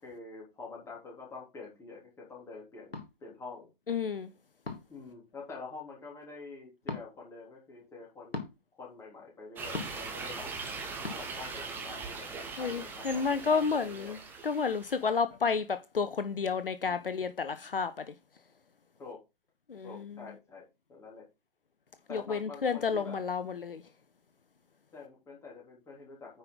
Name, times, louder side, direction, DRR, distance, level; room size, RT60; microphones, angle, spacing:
voice 1, 0.0-3.7 4.9-8.4 8.8-10.5 11.1-14.2 19.0-19.2 19.8-21.2 22.1-23.2 24.9-26.4, left 4 dB, 10° left, 3.5 m, -47 dB
sound 1, 2.9-3.1 4.6-5.0 6.8-7.0 8.3-8.5 9.7-10.1 11.0-11.2, left 3 dB, 85° left, 1.9 m, -37 dB
voice 2, 3.9-4.3 12.6-14.2 14.4-18.0 19.7-20.1 22.1-23.8, left 5 dB, 65° left, 0.8 m, -31 dB
sound 2, 9.6-15.1, right 4 dB, 5° right, 0.9 m, -41 dB
9.7 x 5.1 x 4.0 m
figure-of-eight pair, 130°, 29 cm